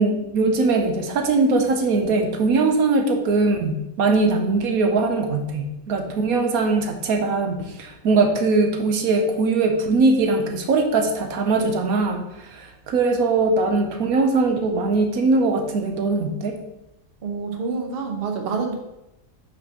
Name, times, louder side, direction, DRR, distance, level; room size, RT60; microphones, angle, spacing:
voice 1, 0.0-16.6, right 3 dB, 80° right, 5 dB, 1.3 m, -21 dB
voice 2, 17.2-18.7, right 4 dB, 45° right, 3 dB, 1.2 m, -27 dB
6.0 x 4.3 x 6.0 m, 0.92 s
omnidirectional pair, 1.5 m